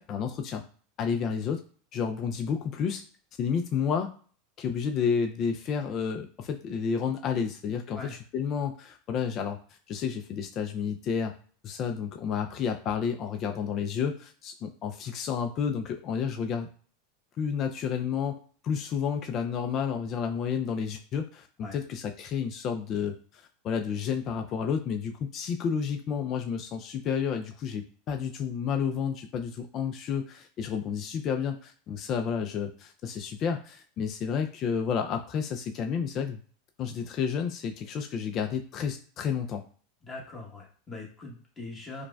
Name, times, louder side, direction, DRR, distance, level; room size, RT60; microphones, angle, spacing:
voice 1, 0.1-0.6 1.0-1.6 1.9-3.0 3.4-4.1 4.6-9.6 9.9-11.4 11.6-16.7 17.4-18.4 18.6-23.2 23.6-36.4 36.8-39.6, left 7 dB, 40° left, 5 dB, 0.4 m, -30 dB
voice 2, 40.0-42.0, left 2 dB, 20° left, -2 dB, 1.1 m, -41 dB
4.7 x 2.2 x 2.3 m, 0.44 s
supercardioid pair, 120°, 0 cm